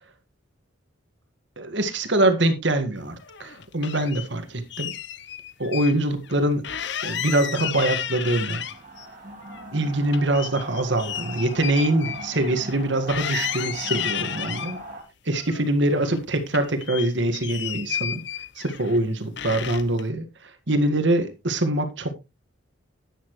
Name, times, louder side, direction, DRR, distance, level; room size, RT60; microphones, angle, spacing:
voice 1, 1.6-4.9 5.6-8.6 9.7-14.8 15.3-18.2 18.6-22.1, right 1 dB, 65° right, 1.7 m, -24 dB
sound 1, 3.2-4.3 4.7-5.9 6.2-6.4 6.6-9.1 9.4-12.8 13.1-14.8 15.3-16.2 16.5-19.0 19.4-20.0, left 9 dB, 60° left, 0.7 m, -32 dB
sound 2, 8.4-15.0, right 1 dB, 40° right, 2.5 m, -40 dB
11.5 x 10.0 x 3.1 m
head